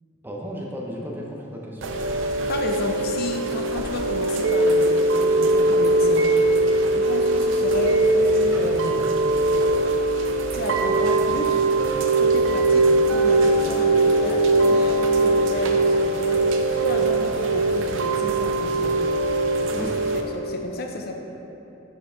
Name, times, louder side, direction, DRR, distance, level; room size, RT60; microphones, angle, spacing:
voice 1, 0.2-1.9 19.7-19.9, equal, 10° right, -3 dB, 0.7 m, -34 dB
Chime / Rain, 1.8-20.2, right 2 dB, 65° right, 0.5 m, -21 dB
voice 2, 2.5-6.3 6.6-9.7 10.3-11.7 12.2-19.0 19.5-21.2, left 1 dB, 50° left, 3 dB, 0.5 m, -32 dB
6.7 x 4.5 x 3.7 m, 2.9 s
head